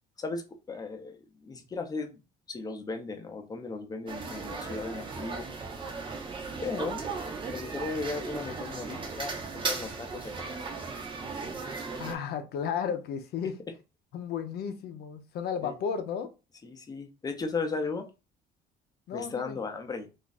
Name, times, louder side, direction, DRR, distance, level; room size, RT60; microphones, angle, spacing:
voice 1, 0.2-2.2 2.5-5.5 6.6-7.1 7.5-10.6 15.6-15.7 16.6-18.1 19.1-20.1, left 4 dB, 20° left, 5 dB, 0.7 m, -36 dB
sound 1, 4.1-12.2, right 4 dB, 30° right, 0.7 m, -36 dB
voice 2, 12.0-13.6 14.1-16.3 19.1-19.6, left 7 dB, 70° left, 8 dB, 0.6 m, -33 dB
2.6 x 2.3 x 4.0 m, 0.29 s
cardioid pair, 110°, 17 cm